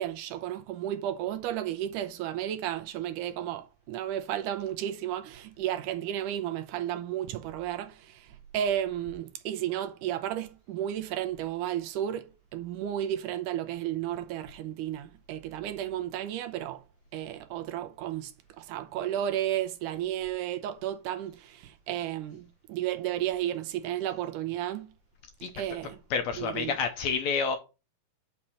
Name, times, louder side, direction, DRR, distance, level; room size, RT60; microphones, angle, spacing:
voice 1, 0.0-16.8 17.1-18.3 18.6-24.9 25.5-26.0 26.4-26.8, right 11 dB, 80° right, 2.1 m, -33 dB
voice 2, 26.1-27.6, left 5 dB, 70° left, 1.8 m, -28 dB
6.5 x 5.9 x 4.3 m
omnidirectional pair, 3.8 m